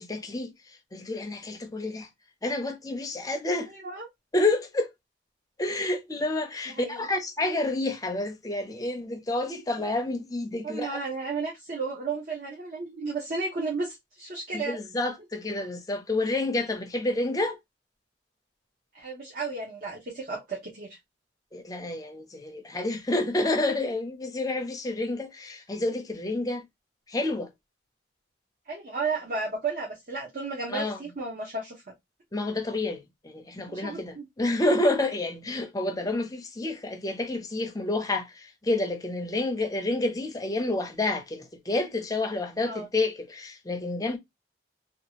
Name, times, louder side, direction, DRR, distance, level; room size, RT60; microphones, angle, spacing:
voice 1, 0.0-2.1 2.4-3.7 4.3-4.9 5.6-11.0 14.5-17.6 21.5-26.6 27.1-27.5 30.7-31.0 32.3-44.2, left 2 dB, 20° left, 0.5 m, -29 dB
voice 2, 3.7-4.1 6.8-7.1 10.6-14.8 18.9-21.0 28.7-31.8 33.7-34.2 42.6-42.9, right 4 dB, 50° right, 0.8 m, -33 dB
2.8 x 2.3 x 2.9 m
head